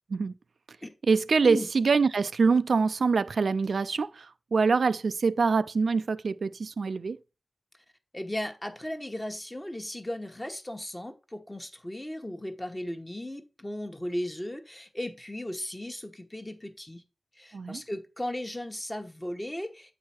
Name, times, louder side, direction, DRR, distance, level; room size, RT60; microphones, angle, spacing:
voice 1, 1.0-7.2 17.5-17.8, right 4 dB, 80° right, 0.3 m, -25 dB
voice 2, 8.1-17.0 17.4-19.9, left 1 dB, 15° left, 1.0 m, -36 dB
8.3 x 4.7 x 4.3 m
wide cardioid pair, 105°, 0 cm